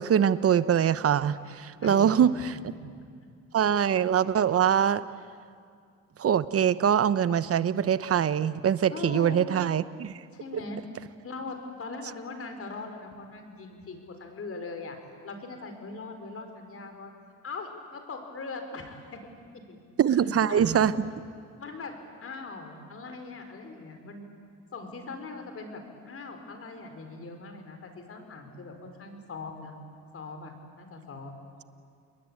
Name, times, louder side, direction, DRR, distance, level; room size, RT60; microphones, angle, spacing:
voice 1, 0.0-2.3 3.5-5.0 6.2-10.1 20.0-20.9, right 9 dB, 50° right, 15 dB, 0.9 m, -23 dB
voice 2, 1.8-2.5 8.9-9.4 10.3-10.8 11.2-15.0 15.2-17.1 17.4-19.2 19.7-19.8 20.1-20.9 21.6-24.3 24.7-29.7 30.1-31.3, left 3 dB, 50° left, 6 dB, 4.6 m, -40 dB
29.0 x 21.0 x 8.8 m, 2.2 s
cardioid pair, 90°, 30 cm